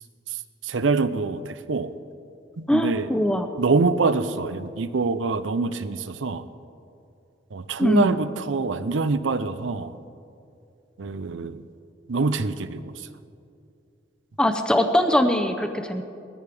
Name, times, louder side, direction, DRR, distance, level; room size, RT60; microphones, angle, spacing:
voice 1, 0.6-1.9 2.6-3.1 3.6-6.4 7.5-9.9 11.0-11.6 12.1-12.9, right 4 dB, 90° right, 12 dB, 0.6 m, -25 dB
voice 2, 2.7-3.5 7.8-8.1 14.4-16.0, equal, 5° left, 6 dB, 0.6 m, -21 dB
19.5 x 14.5 x 3.5 m, 2.5 s
head